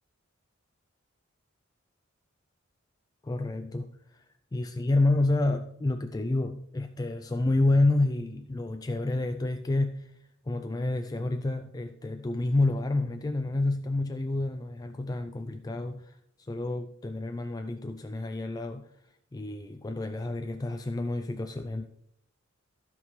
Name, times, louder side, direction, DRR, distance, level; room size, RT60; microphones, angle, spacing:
voice 1, 3.2-4.0 4.5-10.1 10.5-16.2 16.5-18.9 19.3-21.8, left 2 dB, 20° left, 7 dB, 0.3 m, -29 dB
15.0 x 5.2 x 3.1 m, 0.73 s
head